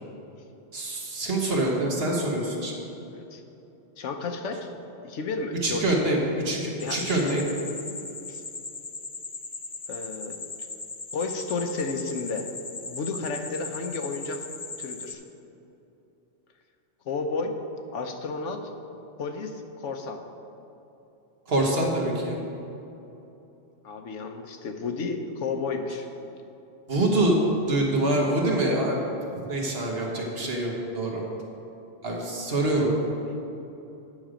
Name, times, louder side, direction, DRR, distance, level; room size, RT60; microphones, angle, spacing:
voice 1, 0.7-2.7 5.6-7.4 21.5-22.4 26.9-27.4 27.7-29.0 29.5-31.2 32.0-32.9, right 1 dB, 60° right, -1 dB, 1.6 m, -25 dB
voice 2, 4.0-4.7 5.0-6.0 6.8-7.4 8.3-8.4 9.9-10.4 11.1-12.5 12.8-14.5 14.8-15.2 17.1-17.6 17.9-18.7 19.2-20.2 23.8-26.1 32.5-32.6, left 4 dB, 90° left, 5 dB, 1.1 m, -32 dB
sound 1, 6.8-15.1, left 4 dB, 35° left, 0.3 m, -38 dB
9.4 x 6.5 x 5.0 m, 2.9 s
omnidirectional pair, 1.2 m